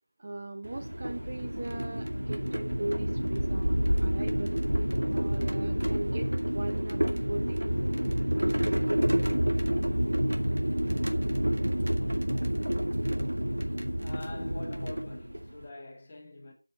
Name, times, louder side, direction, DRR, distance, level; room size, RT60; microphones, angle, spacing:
voice 1, 0.2-4.6 5.1-7.9, right 2 dB, 25° right, 1.1 m, -39 dB
sound 1, 0.6-15.6, equal, 80° right, 2.4 m, -29 dB
voice 2, 14.0-16.5, left 2 dB, 15° left, 1.9 m, -44 dB
7.6 x 6.8 x 8.1 m
figure-of-eight pair, 175°, 0 cm